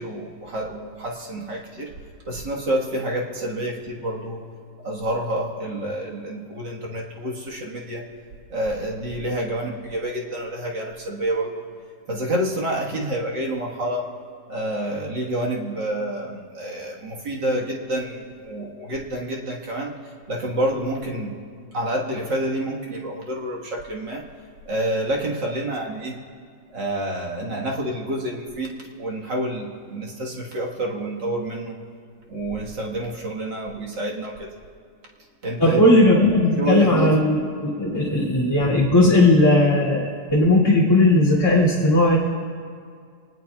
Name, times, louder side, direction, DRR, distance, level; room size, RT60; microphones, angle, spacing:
voice 1, 0.0-1.9 2.3-4.4 4.8-8.0 8.5-11.6 12.1-14.1 14.5-20.0 20.3-21.3 21.7-24.3 24.7-26.2 26.7-31.8 32.3-34.5 35.4-35.8 36.6-37.1, right 1 dB, 45° right, -2 dB, 1.8 m, -28 dB
voice 2, 35.6-42.2, left 1 dB, 10° left, -7 dB, 2.1 m, -17 dB
25.5 x 19.5 x 2.4 m, 2.2 s
omnidirectional pair, 3.4 m